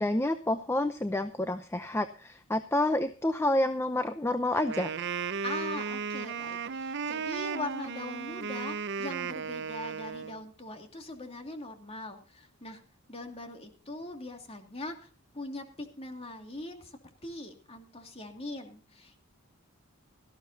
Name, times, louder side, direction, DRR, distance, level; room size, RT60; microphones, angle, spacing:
voice 1, 0.0-4.9, left 1 dB, 10° left, 9 dB, 0.6 m, -29 dB
Wind instrument woodwind instrument, 4.5-10.4, right 6 dB, 55° right, 0.6 m, -35 dB
voice 2, 5.4-12.8 13.1-19.2, left 2 dB, 30° left, 4 dB, 2.5 m, -41 dB
17.5 x 14.0 x 2.8 m, 0.35 s
head